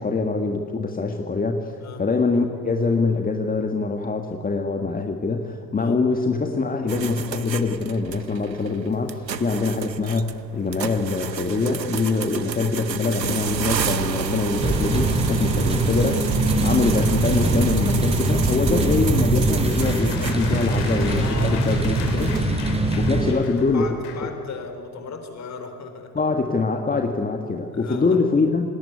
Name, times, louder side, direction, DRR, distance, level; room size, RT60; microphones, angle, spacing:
voice 1, 0.0-16.3 16.6-22.3 22.9-23.9 26.1-28.6, left 4 dB, 15° left, 4 dB, 1.7 m, -24 dB
sound 1, 6.9-22.8, right 7 dB, 85° right, 1.0 m, -30 dB
sound 2, 14.6-23.3, right 2 dB, 10° right, 4.5 m, -22 dB
sound 3, 19.2-24.3, left 8 dB, 50° left, 3.3 m, -38 dB
voice 2, 21.2-22.5 23.3-26.2 27.7-28.2, left 5 dB, 35° left, 7 dB, 4.0 m, -37 dB
26.0 x 19.0 x 9.8 m, 2.6 s
figure-of-eight pair, 65°, 49 cm